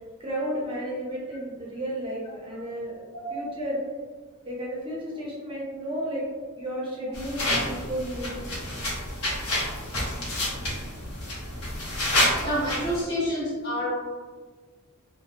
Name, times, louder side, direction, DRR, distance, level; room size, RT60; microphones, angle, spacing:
voice 1, 0.2-3.0 3.3-3.8 4.5-6.2 6.6-8.5, equal, 25° right, -5 dB, 0.5 m, -33 dB
sound 1, 7.1-13.0, left 1 dB, 80° left, 0.7 m, -29 dB
voice 2, 12.4-13.9, equal, 50° left, -6 dB, 1.0 m, -29 dB
2.6 x 2.1 x 2.3 m, 1.4 s
head